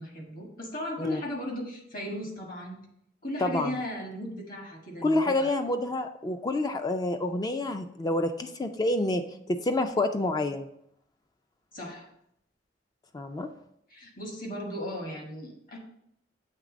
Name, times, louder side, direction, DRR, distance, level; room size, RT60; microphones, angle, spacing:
voice 1, 0.0-2.8 3.2-5.5 11.7-12.1 13.9-15.8, left 1 dB, 50° left, 0 dB, 1.6 m, -36 dB
voice 2, 3.4-3.7 5.0-9.2 9.5-10.7 13.1-13.5, left 2 dB, 20° left, 7 dB, 0.3 m, -28 dB
7.3 x 3.3 x 5.0 m, 0.74 s
head